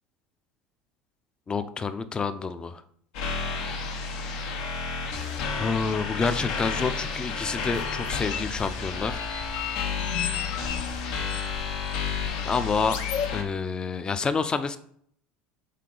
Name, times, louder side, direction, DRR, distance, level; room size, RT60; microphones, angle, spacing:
voice 1, 1.5-2.8 4.1-4.2 5.4-9.2 12.4-13.0 13.3-14.8, left 5 dB, 20° left, 11 dB, 0.5 m, -28 dB
sound 1, 3.1-13.4, left 5 dB, 80° left, 1.2 m, -31 dB
sound 2, 7.7-13.3, left 8 dB, 60° left, 0.6 m, -35 dB
6.6 x 3.8 x 3.9 m, 0.64 s
supercardioid pair, 115°, 4 cm